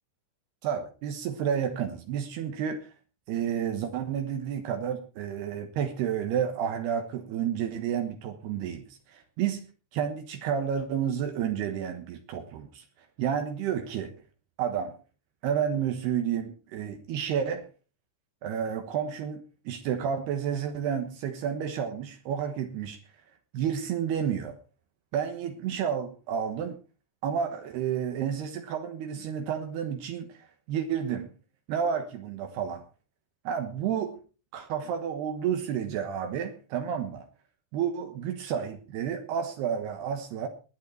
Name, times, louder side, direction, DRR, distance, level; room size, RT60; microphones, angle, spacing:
voice 1, 0.6-2.9 3.3-9.6 9.9-12.8 13.2-14.1 14.6-15.0 15.4-17.7 18.4-23.0 23.5-24.6 25.1-26.8 27.2-31.3 31.7-32.8 33.4-34.2 34.5-37.3 37.7-40.5, right 8 dB, 75° right, 6 dB, 3.2 m, -30 dB
19.5 x 9.7 x 4.6 m, 0.35 s
omnidirectional pair, 5.0 m